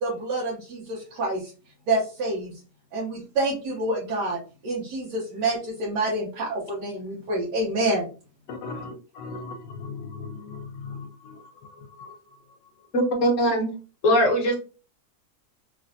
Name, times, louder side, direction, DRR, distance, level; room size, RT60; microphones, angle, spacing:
voice 1, 0.0-1.5 1.9-2.6 2.9-8.1, right 2 dB, 75° right, 1.5 m, -27 dB
voice 2, 8.5-12.2, left 4 dB, 90° left, 1.2 m, -38 dB
voice 3, 12.9-13.7 14.0-14.6, equal, 55° left, 1.2 m, -21 dB
3.2 x 3.1 x 2.5 m
omnidirectional pair, 1.8 m